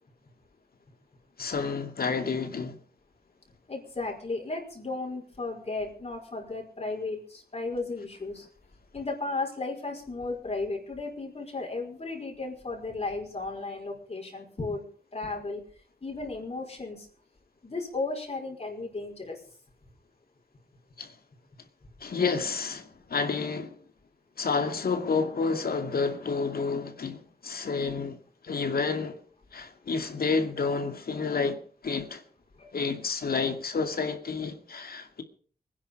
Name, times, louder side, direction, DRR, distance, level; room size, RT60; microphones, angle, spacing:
voice 1, 1.4-2.8 21.0-21.1 22.0-23.8 24.4-28.2 28.4-29.2 29.5-32.2 32.7-35.2, left 4 dB, 75° left, 2.4 m, -30 dB
voice 2, 3.7-8.5 8.9-15.6 16.0-17.1 17.6-19.4 32.6-32.7, left 3 dB, 40° left, 5.2 m, -34 dB
23.5 x 10.5 x 5.5 m
wide cardioid pair, 85°, 16 cm